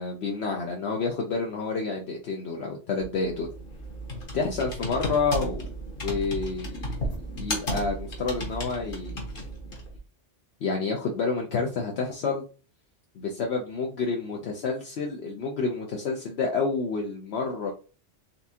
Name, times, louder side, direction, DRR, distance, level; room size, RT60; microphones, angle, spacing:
voice 1, 0.0-3.5 4.3-5.7 6.0-6.9 7.3-9.2 10.6-12.4 13.2-17.7, left 4 dB, 65° left, 0 dB, 0.9 m, -29 dB
Computer keyboard, 3.0-10.0, equal, 50° left, 1.4 m, -34 dB
4.1 x 3.5 x 2.7 m, 0.36 s
omnidirectional pair, 1.2 m